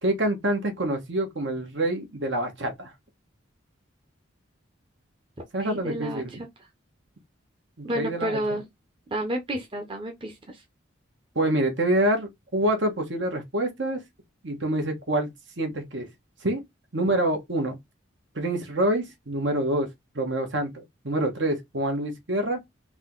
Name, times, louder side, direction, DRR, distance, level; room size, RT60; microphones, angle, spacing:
voice 1, 0.0-2.9 5.5-6.3 7.8-8.4 11.3-14.0 14.4-16.1 16.4-16.6 16.9-17.8 18.3-19.9 20.1-22.6, right 1 dB, 65° right, 1.5 m, -26 dB
voice 2, 5.6-6.4 7.8-8.7 9.1-10.6, right 1 dB, 25° right, 0.9 m, -31 dB
3.9 x 3.0 x 3.9 m
head